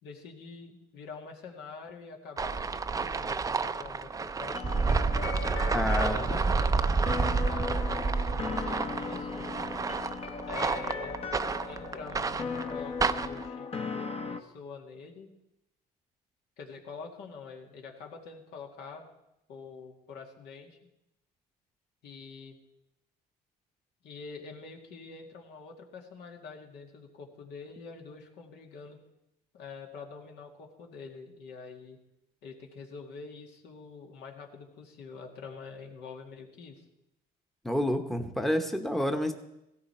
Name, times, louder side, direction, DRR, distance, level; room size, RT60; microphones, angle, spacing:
voice 1, 0.0-4.9 5.9-9.4 10.5-11.2 11.7-15.3 16.6-19.1 19.5-20.8 22.0-22.6 24.0-29.0 29.5-32.0 32.4-36.8, left 5 dB, 80° left, 1 dB, 2.1 m, -46 dB
sound 1, 2.4-13.5, right 4 dB, 20° right, 0.5 m, -29 dB
sound 2, 4.5-14.4, left 5 dB, 35° left, 1.0 m, -37 dB
voice 2, 5.7-6.2 37.6-39.3, left 1 dB, ahead, 5 dB, 0.9 m, -28 dB
16.5 x 13.5 x 4.4 m, 0.87 s
cardioid pair, 110°, 17 cm